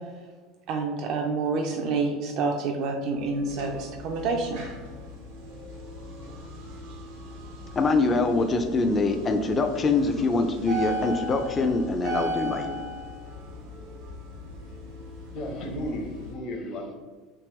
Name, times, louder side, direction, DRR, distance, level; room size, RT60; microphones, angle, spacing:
voice 1, 0.7-4.7, right 4 dB, 60° right, 2 dB, 0.4 m, -28 dB
sound 1, 3.2-16.3, equal, 85° right, 1.1 m, -38 dB
voice 2, 7.8-12.8, left 3 dB, 30° left, 6 dB, 0.4 m, -24 dB
voice 3, 15.3-17.0, equal, 55° left, 3 dB, 0.8 m, -34 dB
3.5 x 2.9 x 3.0 m, 1.5 s
supercardioid pair, 95°, 0 cm